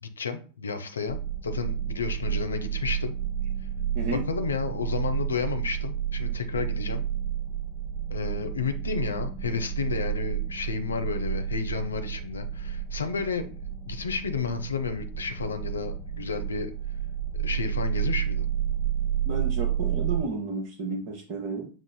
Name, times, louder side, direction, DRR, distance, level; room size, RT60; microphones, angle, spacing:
voice 1, 0.0-3.2 4.1-7.0 8.1-13.6 13.9-16.7 17.3-18.5, left 5 dB, 70° left, 8 dB, 0.4 m, -31 dB
sound 1, 1.1-20.2, right 9 dB, 30° left, 0.9 m, -31 dB
voice 2, 19.3-21.7, right 3 dB, 40° right, -1 dB, 0.7 m, -32 dB
6.1 x 2.4 x 2.2 m, 0.38 s
figure-of-eight pair, 90°, 0 cm